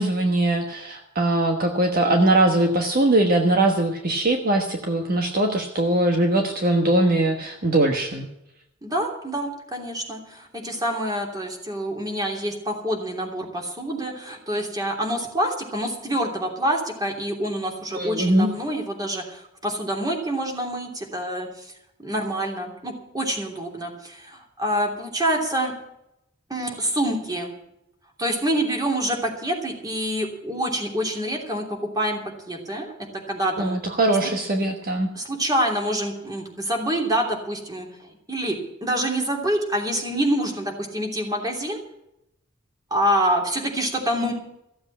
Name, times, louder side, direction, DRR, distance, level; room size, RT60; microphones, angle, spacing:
voice 1, 0.0-8.3 17.9-18.5 33.6-35.1, right 1 dB, 45° right, 3 dB, 1.3 m, -21 dB
voice 2, 8.8-21.7 22.0-25.8 26.5-27.5 28.2-31.6 31.9-32.2 32.5-32.9 33.3-33.8 34.2-34.3 35.1-41.8 42.9-44.3, right 1 dB, 20° right, 1 dB, 3.0 m, -26 dB
15.0 x 7.8 x 8.5 m, 0.83 s
head